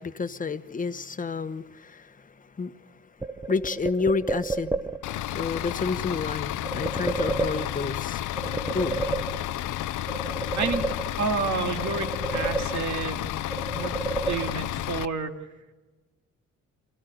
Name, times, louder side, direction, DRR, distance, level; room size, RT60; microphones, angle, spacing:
voice 1, 0.0-3.0 3.5-5.0 5.3-8.2 8.7-9.0, left 4 dB, 25° left, 11 dB, 1.1 m, -30 dB
sound 1, 3.2-5.2 6.6-8.0 8.4-9.7 10.1-11.4 11.8-13.2 13.5-14.9, right 3 dB, 10° right, 0.9 m, -31 dB
Bus / Idling, 5.0-15.0, left 13 dB, 85° left, 0.7 m, -31 dB
voice 2, 10.5-10.9 11.2-13.3 13.7-13.9 14.3-15.3, right 5 dB, 70° right, 6 dB, 2.4 m, -29 dB
24.5 x 15.5 x 8.1 m, 1.2 s
cardioid pair, 90°, 30 cm